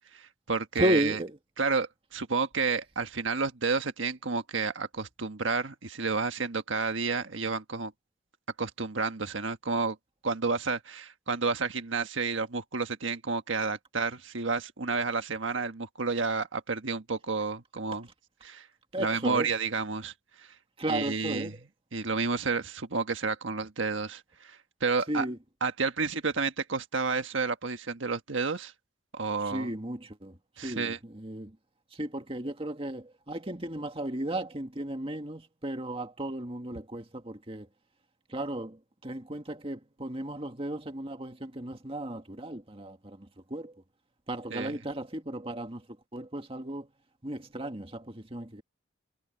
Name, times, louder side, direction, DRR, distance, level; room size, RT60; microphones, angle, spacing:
voice 1, 0.1-1.2 1.6-7.9 8.6-10.0 10.2-18.1 18.4-18.7 19.0-20.1 20.9-21.6 21.9-25.3 25.6-28.7 29.1-29.7 30.6-31.0 44.5-44.8, right 4 dB, 90° right, 1.5 m, -30 dB
voice 2, 0.8-1.3 18.9-19.5 20.8-21.5 25.1-25.4 29.5-30.3 30.6-31.5 32.0-37.7 38.3-38.8 39.0-43.2 43.5-43.7 44.3-45.8 46.1-46.9 47.2-48.6, right 1 dB, 30° right, 2.0 m, -34 dB
head